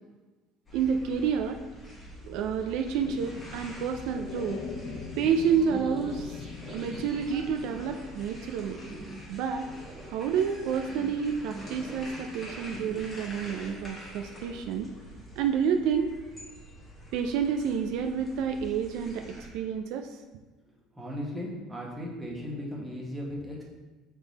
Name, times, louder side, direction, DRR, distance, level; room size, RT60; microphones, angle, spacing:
sound 1, 0.7-19.5, equal, 15° left, 1.2 m, -46 dB
voice 1, 0.7-1.6 2.2-4.6 5.2-6.4 6.7-8.8 9.3-9.7 10.1-14.9 15.4-16.1 17.1-20.2, right 7 dB, 65° right, 5 dB, 0.3 m, -29 dB
sound 2, 3.0-13.2, left 5 dB, 45° left, 0.4 m, -44 dB
sound 3, 5.6-6.3 6.6-8.2 8.6-10.2 10.5-12.2 12.4-14.0 14.3-14.9, right 2 dB, 30° right, 0.6 m, -46 dB
voice 2, 21.0-23.6, equal, 5° right, -4 dB, 1.1 m, -36 dB
6.6 x 3.6 x 4.0 m, 1.2 s
cardioid pair, 165°, 0 cm